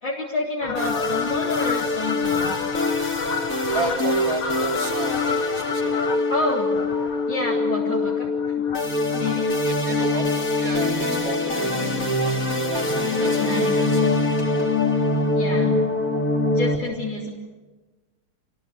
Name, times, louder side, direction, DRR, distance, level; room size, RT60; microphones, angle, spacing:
voice 1, 0.0-2.5 6.3-6.7 7.3-8.7 9.1-9.5 13.4-13.8 15.3-15.8 16.5-17.3, left 2 dB, 60° left, -4 dB, 4.5 m, -28 dB
Fowl, 0.6-11.4 11.9-12.1 12.8-13.4 13.7-13.8 14.0-14.1 14.4-14.5 14.8-15.0 16.0-16.1 16.6-16.7, left 5 dB, 75° left, 2.5 m, -33 dB
sound 1, 0.7-16.8, left 2 dB, 40° left, 3.7 m, -23 dB
voice 2, 3.7-5.2 5.5-6.2 9.6-14.3 14.6-14.7, right 4 dB, 65° right, -1 dB, 3.0 m, -33 dB
27.5 x 22.0 x 9.3 m, 1.2 s
omnidirectional pair, 2.2 m